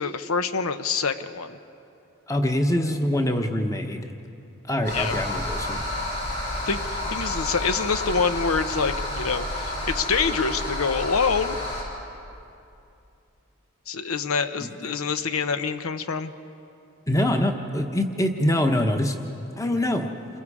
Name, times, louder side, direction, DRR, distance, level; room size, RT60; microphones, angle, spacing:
voice 1, 0.0-1.6 4.9-5.2 6.7-11.6 13.9-16.3, left 5 dB, 85° left, 11 dB, 0.8 m, -26 dB
voice 2, 2.3-4.0 4.7-5.8 14.6-14.9 17.1-19.2 19.6-20.1, left 1 dB, 15° left, 5 dB, 1.0 m, -24 dB
sound 1, 4.8-11.8, left 1 dB, 50° left, 6.0 m, -30 dB
29.0 x 22.0 x 4.9 m, 2.7 s
head